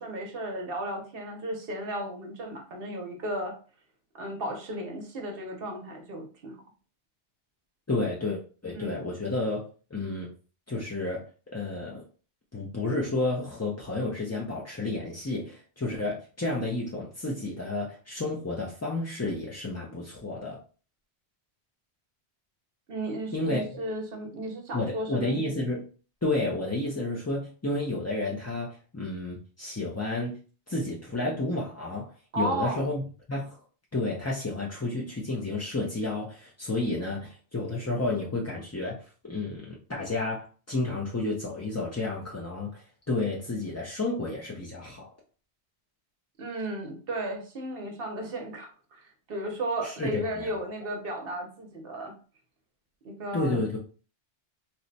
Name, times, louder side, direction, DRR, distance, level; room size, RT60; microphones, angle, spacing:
voice 1, 0.0-3.6 4.1-6.6 8.7-9.0 22.9-25.5 32.3-32.9 46.4-52.2 53.0-53.6, right 1 dB, 60° right, 0.9 m, -34 dB
voice 2, 7.9-9.6 9.9-10.3 10.7-11.2 11.5-12.0 12.5-20.6 23.3-23.6 24.7-25.8 26.2-30.4 30.7-33.0 33.3-33.6 33.9-45.1 49.8-50.6 53.3-53.8, left 2 dB, 25° left, 0.4 m, -31 dB
3.0 x 2.1 x 3.9 m
omnidirectional pair, 1.1 m